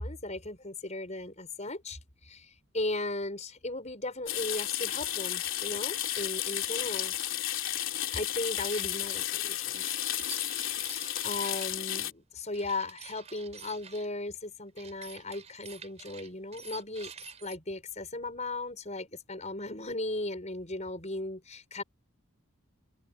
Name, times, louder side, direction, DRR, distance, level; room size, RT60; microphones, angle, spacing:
voice 1, 0.0-7.1 8.1-9.8 11.2-17.1 17.4-21.8, left 2 dB, 30° left, 6.1 m, -37 dB
sound 1, 4.3-12.1, left 12 dB, 60° left, 3.1 m, -33 dB
sound 2, 8.5-8.9 9.7-11.7 12.5-14.1 14.8-17.6, right 5 dB, 30° right, 4.7 m, -48 dB
head